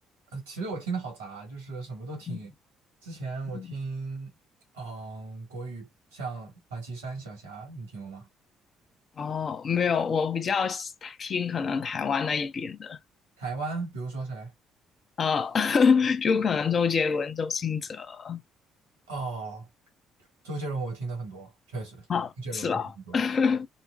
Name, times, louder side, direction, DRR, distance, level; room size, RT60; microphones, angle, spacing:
voice 1, 0.3-2.5 3.0-4.3 4.7-8.3 13.4-14.5 19.1-19.7 20.4-22.1 22.4-23.2, right 3 dB, 85° right, 2.0 m, -36 dB
voice 2, 9.2-13.0 15.2-18.4 22.1-23.7, left 6 dB, 45° left, 0.7 m, -26 dB
5.2 x 2.2 x 2.5 m
hypercardioid pair, 50°, 0 cm